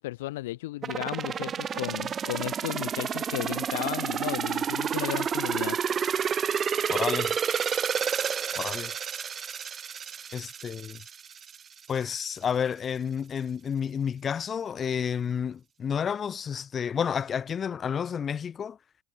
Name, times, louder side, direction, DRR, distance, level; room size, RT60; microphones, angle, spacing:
voice 1, 0.0-5.8 10.1-10.4, left 17 dB, 80° left, 0.4 m, -35 dB
sound 1, 0.8-11.6 12.0-12.1, right 7 dB, 25° right, 1.0 m, -30 dB
voice 2, 6.9-7.4 8.5-8.9 10.3-11.0 11.9-18.8, left 7 dB, 25° left, 2.3 m, -30 dB
supercardioid pair, 120°, 0 cm